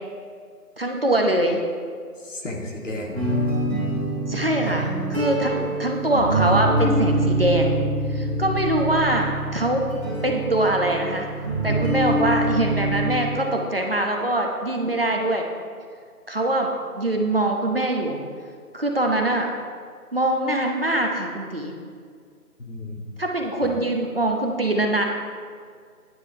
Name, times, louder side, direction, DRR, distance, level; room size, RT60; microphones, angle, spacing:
voice 1, 0.8-1.6 4.3-7.8 8.1-9.8 10.2-11.3 11.6-15.5 16.3-16.7 17.0-18.2 18.7-19.5 20.1-21.8 23.2-25.0, right 1 dB, 40° right, 1 dB, 0.8 m, -23 dB
voice 2, 2.2-3.3 4.6-4.8 5.5-5.7 22.6-23.1 23.6-23.8, left 1 dB, 55° left, 0 dB, 1.6 m, -34 dB
sound 1, 3.1-13.1, right 1 dB, 10° left, 1.7 m, -25 dB
11.5 x 9.7 x 2.7 m, 2.1 s
figure-of-eight pair, 170°, 46 cm